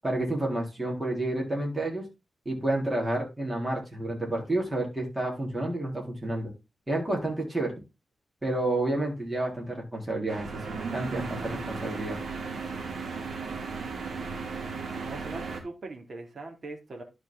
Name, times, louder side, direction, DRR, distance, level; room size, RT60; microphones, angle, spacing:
voice 1, 0.0-2.0 2.5-6.5 6.9-7.7 8.4-12.2, right 1 dB, 15° right, -1 dB, 3.8 m, -30 dB
sound 1, 10.3-15.6, right 4 dB, 65° right, 2.3 m, -35 dB
voice 2, 15.0-17.0, right 2 dB, 40° right, 2 dB, 2.6 m, -41 dB
12.0 x 5.0 x 3.9 m, 0.25 s
wide cardioid pair, 140°, 0 cm